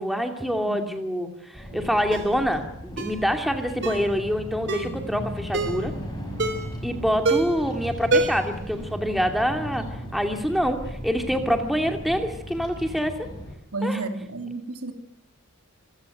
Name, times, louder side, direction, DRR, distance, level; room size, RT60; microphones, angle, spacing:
voice 1, 0.0-5.9 6.8-13.3 13.8-14.0, equal, ahead, 5 dB, 2.5 m, -26 dB
Bird vocalization bird call bird song, 1.5-13.6, equal, 20° left, 5.7 m, -36 dB
Ringtone, 2.1-2.3 3.0-3.2 3.8-4.1 4.7-5.0 5.5-5.8 6.4-6.8 7.2-7.6 8.1-8.6 8.9-9.0, right 2 dB, 55° right, 3.8 m, -25 dB
voice 2, 4.9-5.2 13.7-14.9, right 2 dB, 85° right, 6 dB, 3.0 m, -32 dB
26.5 x 16.5 x 9.1 m, 0.78 s
head